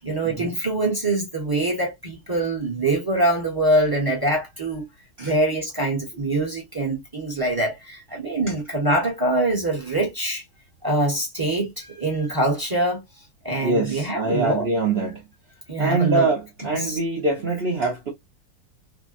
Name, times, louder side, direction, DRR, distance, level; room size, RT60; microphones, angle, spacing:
voice 1, 0.0-4.8 5.2-10.4 10.8-13.0 13.4-14.6 15.7-16.3 16.8-17.0, right 1 dB, 20° right, 0.7 m, -24 dB
voice 2, 13.6-15.2 15.8-18.1, right 3 dB, 60° right, 0.6 m, -24 dB
3.3 x 2.1 x 2.4 m
omnidirectional pair, 2.0 m